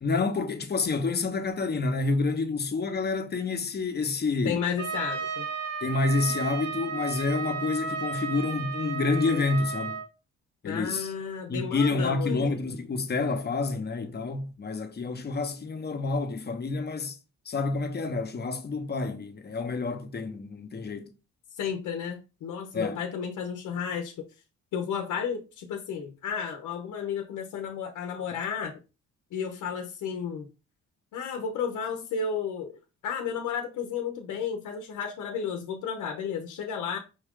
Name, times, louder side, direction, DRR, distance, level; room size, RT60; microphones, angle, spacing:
voice 1, 0.0-4.6 5.8-10.0 10.6-11.1 11.5-17.2 17.5-21.1 22.7-23.0, left 3 dB, 35° left, 0.8 m, -28 dB
voice 2, 4.4-5.5 10.6-12.4 21.5-24.2 24.7-28.7 29.3-30.5 31.1-32.8 33.0-37.0, left 7 dB, 80° left, 0.8 m, -32 dB
Trumpet, 4.8-10.1, right 5 dB, 55° right, 1.0 m, -34 dB
5.6 x 2.4 x 3.6 m
cardioid pair, 90°, 30 cm